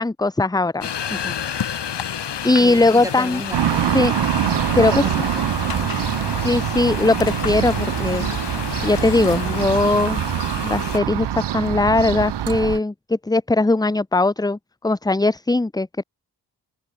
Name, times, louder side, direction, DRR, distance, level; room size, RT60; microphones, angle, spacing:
voice 1, 0.0-1.3 2.4-3.4 3.9-4.1 4.8-5.3 6.4-8.3 8.8-10.2 10.6-14.6 14.8-16.0, left 2 dB, 10° left, 0.7 m, -20 dB
sound 1, 0.8-11.0, left 8 dB, 85° left, 4.4 m, -31 dB
sound 2, 2.6-9.6, left 6 dB, 60° left, 2.3 m, -35 dB
voice 2, 2.6-4.3 4.8-6.5, right 1 dB, 10° right, 4.2 m, -37 dB
sound 3, 3.5-12.8, right 11 dB, 80° right, 0.9 m, -24 dB
cardioid pair, 45°, 41 cm